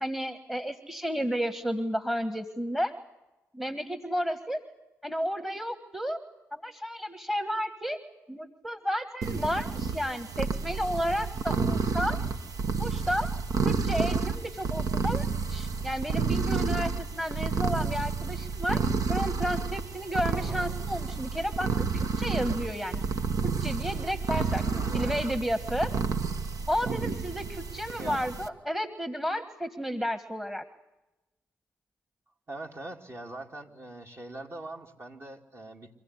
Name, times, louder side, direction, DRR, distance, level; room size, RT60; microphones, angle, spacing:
voice 1, 0.0-2.9 3.5-4.6 5.0-6.2 6.5-8.0 8.3-12.2 12.8-13.3 13.6-18.8 19.1-23.0 23.4-24.6 24.9-25.9 26.7-30.6, equal, 5° right, 11 dB, 1.5 m, -32 dB
sound 1, 9.2-28.5, right 5 dB, 60° right, 1.3 m, -30 dB
voice 2, 20.3-20.8 24.7-25.2 28.0-28.2 32.5-35.9, right 2 dB, 40° right, 2 dB, 2.8 m, -42 dB
25.0 x 15.5 x 9.8 m, 1.0 s
hypercardioid pair, 45°, 7 cm